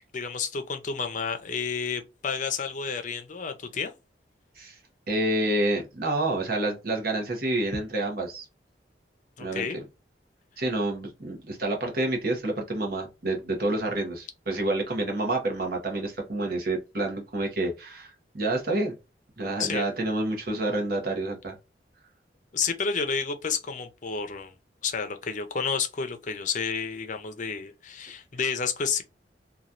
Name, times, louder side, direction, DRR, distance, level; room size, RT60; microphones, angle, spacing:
voice 1, 0.1-3.9 9.4-9.8 19.6-19.9 22.5-24.5 24.8-29.0, left 5 dB, 45° left, 0.6 m, -30 dB
voice 2, 5.1-8.5 9.4-9.8 10.6-18.9 19.4-21.6, right 2 dB, 55° right, 1.0 m, -28 dB
3.0 x 2.4 x 2.5 m
head